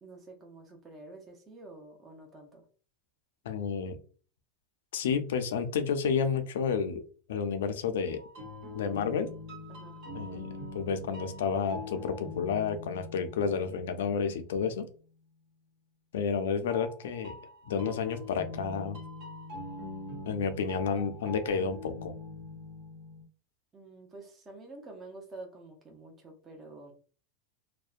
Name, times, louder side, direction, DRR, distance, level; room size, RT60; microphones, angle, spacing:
voice 1, 0.0-2.6 9.7-10.0 23.7-26.9, right 2 dB, 20° right, 1 dB, 0.6 m, -48 dB
voice 2, 3.5-4.0 4.9-7.0 7.3-8.2 8.7-9.3 10.1-14.9 16.1-17.3 17.7-19.0 20.3-22.1, left 6 dB, 85° left, 8 dB, 0.4 m, -31 dB
sound 1, 8.1-14.8 16.7-23.2, left 2 dB, 55° right, 1.3 m, -43 dB
2.5 x 2.1 x 2.3 m, 0.40 s
supercardioid pair, 135°, 0 cm